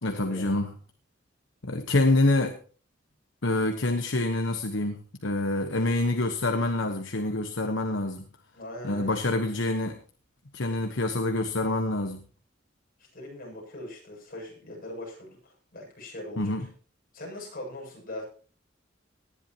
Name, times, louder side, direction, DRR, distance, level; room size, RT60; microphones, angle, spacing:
voice 1, 0.0-0.7 1.6-2.6 3.4-8.2 8.8-10.0 10.5-12.2 16.4-16.6, left 2 dB, 70° left, 6 dB, 1.2 m, -26 dB
voice 2, 8.5-9.1 13.1-16.7 17.1-18.2, left 1 dB, 50° left, -1 dB, 7.5 m, -41 dB
19.0 x 11.0 x 3.0 m, 0.40 s
head